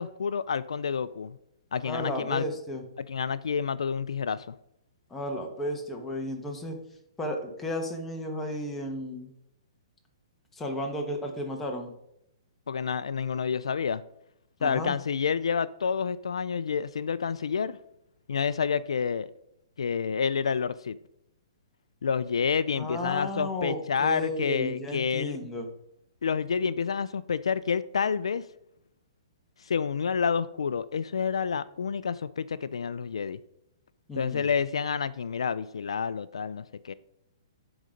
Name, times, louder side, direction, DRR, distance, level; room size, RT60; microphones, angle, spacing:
voice 1, 0.0-1.4 1.7-2.5 3.1-4.5 12.7-14.0 14.6-17.8 18.3-19.3 19.8-21.0 22.0-25.4 26.2-28.4 29.6-33.4 34.1-36.9, left 6 dB, 90° left, 0.4 m, -29 dB
voice 2, 1.8-2.8 5.1-6.8 7.2-9.3 10.5-11.9 14.6-14.9 22.8-25.7 34.1-34.5, left 1 dB, 10° left, 1.2 m, -33 dB
9.7 x 4.0 x 5.1 m
hypercardioid pair, 145°, 3 cm